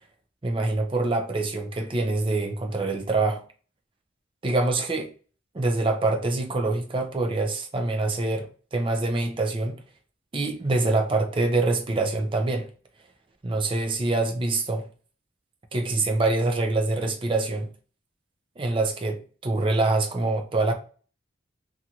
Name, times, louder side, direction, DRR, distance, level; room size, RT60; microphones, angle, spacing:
voice 1, 0.4-3.4 4.4-5.1 5.5-9.8 10.3-12.7 13.4-14.9 15.7-17.7 18.6-20.7, right 2 dB, 25° right, 0.5 m, -25 dB
2.6 x 2.4 x 2.8 m
head